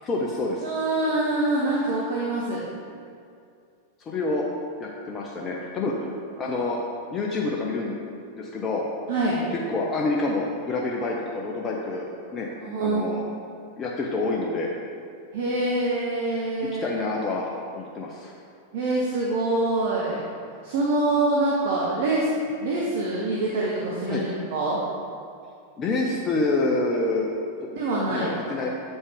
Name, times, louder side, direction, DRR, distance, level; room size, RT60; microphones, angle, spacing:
voice 1, 0.0-0.7 4.1-4.4 4.8-6.1 6.4-6.8 7.1-8.0 8.4-8.8 9.5-12.1 12.3-12.5 12.8-13.2 13.8-14.7 16.8-18.3 24.1-24.2 25.8-27.3 28.1-28.7, left 3 dB, 25° left, -2 dB, 0.7 m, -27 dB
voice 2, 0.6-2.6 5.8-5.9 6.4-6.5 9.1-9.4 12.6-13.1 15.3-16.9 18.7-20.2 20.6-22.3 22.6-24.8 27.7-28.3, right 2 dB, 55° right, -5 dB, 1.0 m, -25 dB
8.1 x 5.3 x 3.6 m, 2.4 s
figure-of-eight pair, 90°, 0 cm